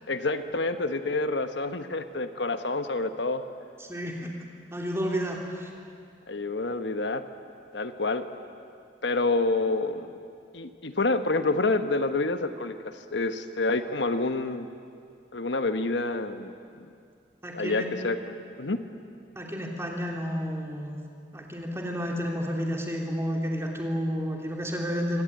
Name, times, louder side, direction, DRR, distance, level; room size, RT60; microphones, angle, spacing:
voice 1, 0.1-3.4 6.3-7.2 7.7-8.3 9.0-10.1 10.5-14.7 15.3-16.5 17.5-18.8, left 3 dB, 80° left, 9 dB, 1.2 m, -28 dB
voice 2, 3.8-4.2 4.7-5.7 17.4-17.9 19.3-21.0 21.3-25.2, equal, 15° right, 0 dB, 3.1 m, -31 dB
25.0 x 18.0 x 8.9 m, 2.3 s
head